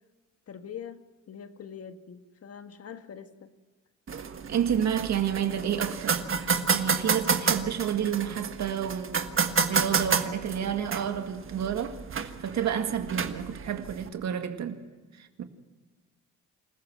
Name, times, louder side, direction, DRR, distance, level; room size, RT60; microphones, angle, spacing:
voice 1, 0.5-3.5, left 8 dB, 50° left, 1.6 m, -43 dB
sound 1, 4.1-14.1, right 6 dB, 45° right, 1.5 m, -30 dB
voice 2, 4.5-6.2 6.7-14.8 15.2-15.4, right 8 dB, 65° right, 2.0 m, -30 dB
27.0 x 14.5 x 7.5 m
cardioid pair, 90°, 30 cm